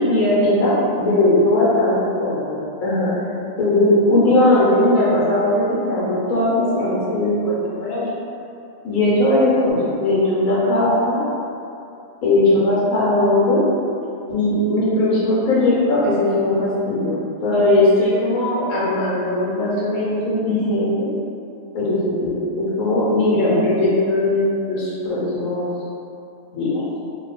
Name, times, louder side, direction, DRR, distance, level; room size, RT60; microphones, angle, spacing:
voice 1, 0.0-3.2 3.6-8.2 8.8-11.2 12.2-13.6 14.3-21.1 21.7-25.7 26.5-26.8, left 1 dB, 80° left, -7 dB, 1.4 m, -19 dB
2.9 x 2.3 x 4.0 m, 2.7 s
omnidirectional pair, 1.4 m